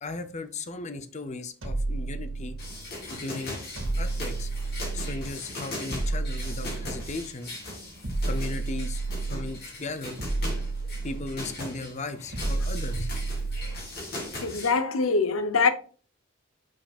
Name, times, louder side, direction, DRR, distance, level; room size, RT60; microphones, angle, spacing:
voice 1, 0.0-2.6 3.1-3.6 4.0-4.5 4.9-7.6 8.3-9.0 9.3-10.2 11.0-13.1, left 3 dB, 35° left, 0.7 m, -36 dB
sound 1, 1.6-2.9 3.8-5.4 5.9-7.3 8.0-9.7 10.2-11.6 12.3-13.9, right 3 dB, 70° right, 2.0 m, -31 dB
sound 2, 2.6-14.7, left 2 dB, 50° left, 2.4 m, -39 dB
voice 2, 14.4-15.7, left 4 dB, 85° left, 0.8 m, -23 dB
8.8 x 5.3 x 2.4 m
head